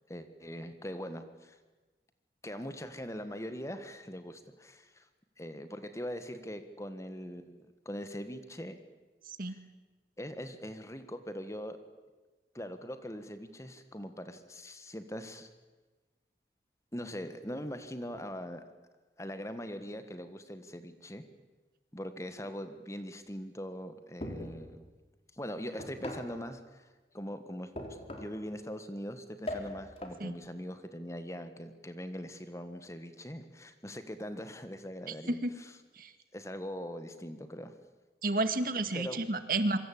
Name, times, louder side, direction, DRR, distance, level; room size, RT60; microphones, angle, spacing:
voice 1, 0.1-1.6 2.4-5.1 5.4-8.8 9.4-9.6 10.2-11.8 12.5-15.5 16.9-18.6 19.2-21.2 21.9-24.9 25.3-35.7 36.3-37.7 38.9-39.2, equal, 15° left, 10 dB, 1.5 m, -42 dB
sound 1, 24.2-24.7 25.8-26.4 27.8-28.4 29.5-30.2, left 1 dB, 35° left, 3.7 m, -40 dB
voice 2, 38.2-39.8, right 2 dB, 50° right, 10 dB, 1.9 m, -31 dB
25.5 x 24.5 x 8.6 m, 1.2 s
head